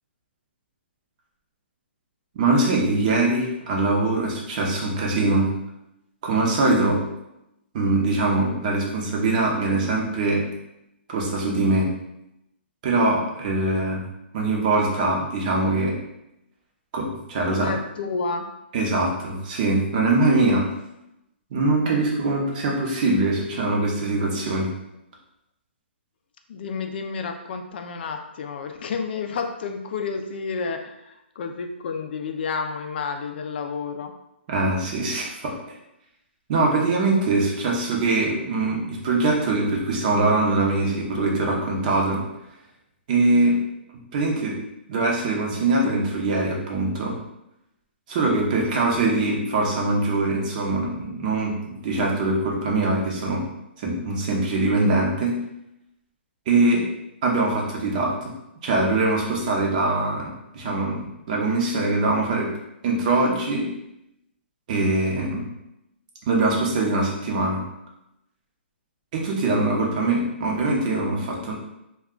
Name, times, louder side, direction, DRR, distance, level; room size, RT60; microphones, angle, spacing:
voice 1, 2.3-5.5 6.2-7.0 7.7-10.4 11.1-11.9 12.8-14.0 14.3-16.0 16.9-17.7 18.7-20.6 21.5-24.7 34.5-35.6 36.5-42.2 43.1-43.6 44.1-44.6 44.9-47.2 48.1-53.5 53.8-55.4 56.5-56.9 57.2-58.3 58.6-62.5 62.8-63.7 64.7-65.5 66.3-67.6 69.1-71.5, right 2 dB, 40° right, -1 dB, 0.7 m, -22 dB
voice 2, 17.4-18.5 26.5-34.1, left 5 dB, 60° left, 5 dB, 0.4 m, -30 dB
2.3 x 2.2 x 3.6 m, 0.86 s
hypercardioid pair, 145°, 6 cm